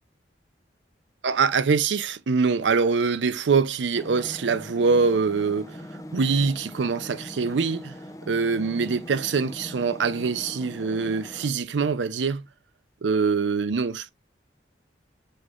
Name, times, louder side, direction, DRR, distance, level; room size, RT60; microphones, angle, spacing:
voice 1, 1.2-5.8 6.1-7.9 8.3-12.5 13.0-14.1, right 5 dB, 85° right, 0.5 m, -24 dB
sound 1, 3.9-11.5, equal, 20° left, 0.6 m, -41 dB
6.3 x 3.2 x 2.4 m
head